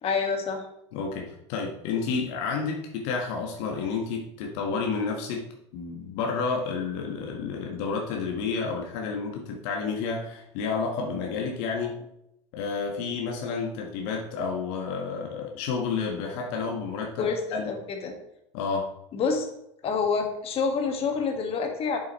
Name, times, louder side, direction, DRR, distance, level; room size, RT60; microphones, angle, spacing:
voice 1, 0.0-0.6 17.2-17.4 17.6-18.1 19.1-19.5 19.8-22.0, left 5 dB, 40° left, 4 dB, 1.6 m, -27 dB
voice 2, 0.9-5.4 5.7-12.0 12.5-17.7 18.5-18.9, left 5 dB, 60° left, 1 dB, 1.5 m, -30 dB
8.1 x 7.5 x 3.1 m, 0.79 s
hypercardioid pair, 80°, 16 cm